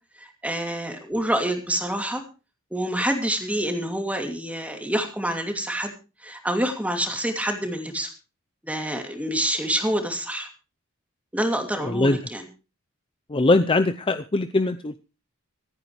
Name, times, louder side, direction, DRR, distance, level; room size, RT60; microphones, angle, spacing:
voice 1, 0.2-2.2 2.7-5.9 6.2-8.1 8.6-10.5 11.3-12.5, right 1 dB, 5° right, 4 dB, 2.6 m, -27 dB
voice 2, 11.8-12.2 13.3-15.0, left 2 dB, 25° left, 10 dB, 0.6 m, -21 dB
25.5 x 9.4 x 3.2 m, 0.32 s
head